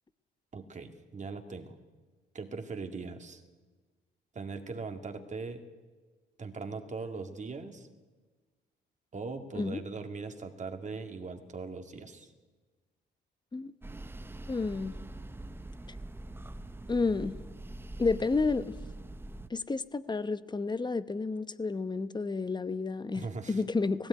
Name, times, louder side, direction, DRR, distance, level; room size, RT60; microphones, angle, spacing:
voice 1, 0.5-1.8 2.3-3.4 4.3-5.6 6.4-7.9 9.1-12.3 23.1-23.6, right 4 dB, 35° right, 5 dB, 2.2 m, -40 dB
sound 1, 13.8-19.5, right 2 dB, 10° right, 0.7 m, -43 dB
voice 2, 14.5-15.0 16.9-17.4 18.0-18.8 19.5-24.1, left 3 dB, 20° left, 14 dB, 0.9 m, -31 dB
17.5 x 16.5 x 9.5 m, 1.3 s
cardioid pair, 90°, 20 cm